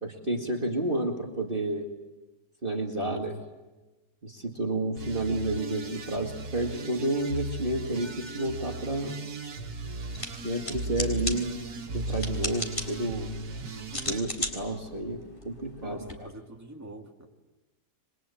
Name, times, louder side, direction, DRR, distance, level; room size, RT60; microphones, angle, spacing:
voice 1, 0.0-1.9 2.6-3.4 4.2-9.2 10.4-11.5 11.9-13.3 14.1-15.2 15.4-16.0, right 2 dB, 35° right, 1 dB, 2.4 m, -30 dB
sound 1, 5.0-14.2, right 2 dB, 85° right, 2.2 m, -36 dB
sound 2, 10.0-16.1, left 1 dB, 35° left, 4.1 m, -38 dB
voice 2, 15.8-17.3, right 1 dB, 10° right, 1 dB, 2.6 m, -45 dB
28.5 x 23.0 x 8.6 m, 1.1 s
omnidirectional pair, 1.6 m